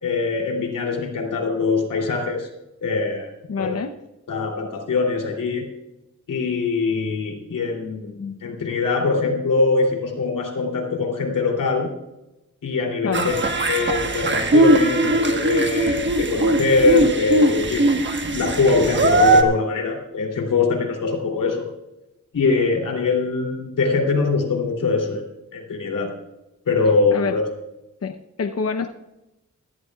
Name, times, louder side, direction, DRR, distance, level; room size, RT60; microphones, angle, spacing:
voice 1, 0.0-2.5 2.8-3.3 3.6-3.8 4.3-5.7 6.3-11.9 12.6-17.9 18.3-21.7 22.3-25.2 25.5-26.2 26.6-27.4, left 4 dB, 90° left, 0 dB, 3.1 m, -22 dB
voice 2, 3.5-3.9 13.0-13.3 27.1-27.3 28.0-28.9, left 5 dB, 50° left, 7 dB, 0.8 m, -26 dB
sound 1, 13.1-19.4, right 1 dB, 35° right, 1.3 m, -19 dB
17.0 x 14.5 x 2.4 m, 0.95 s
cardioid pair, 80°, 31 cm